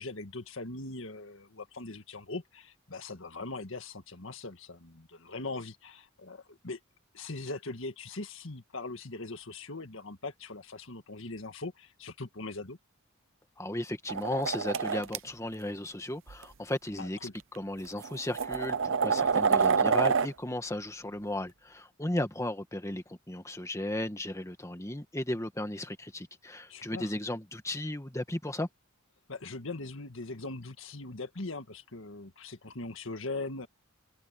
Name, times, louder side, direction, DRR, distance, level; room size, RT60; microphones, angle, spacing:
voice 1, 0.0-6.8 7.1-12.8 17.0-17.3 26.7-27.1 29.3-33.7, left 3 dB, 65° left, 1.9 m, -40 dB
voice 2, 13.6-28.7, left 1 dB, 15° left, 1.7 m, -35 dB
sound 1, 14.1-15.2 16.3-16.4 17.4-17.5 18.0-20.3, right 5 dB, 65° right, 0.8 m, -27 dB
head